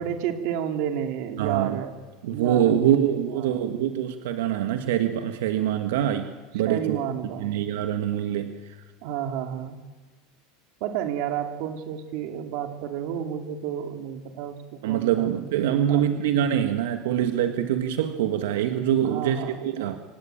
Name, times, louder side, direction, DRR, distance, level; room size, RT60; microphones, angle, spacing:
voice 1, 0.0-1.9 2.3-3.6 6.7-7.6 9.0-9.8 10.8-15.3 15.9-16.1 16.5-16.8 19.0-20.0, right 9 dB, 50° right, 5 dB, 2.8 m, -31 dB
voice 2, 1.4-1.8 2.2-7.0 7.4-8.8 14.8-20.0, right 10 dB, 85° right, 7 dB, 1.5 m, -24 dB
25.5 x 17.5 x 9.0 m, 1.2 s
supercardioid pair, 175°, 0 cm